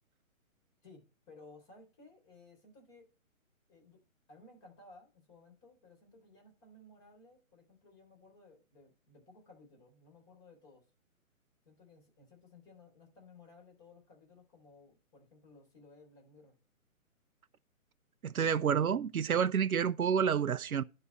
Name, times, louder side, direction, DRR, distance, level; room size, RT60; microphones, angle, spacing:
voice 1, 0.8-3.1 3.7-4.0 4.3-10.8 11.6-16.6, left 3 dB, 25° left, 3.9 m, -58 dB
voice 2, 18.2-20.8, right 7 dB, 85° right, 0.6 m, -29 dB
10.0 x 4.3 x 7.0 m
figure-of-eight pair, 135°, 42 cm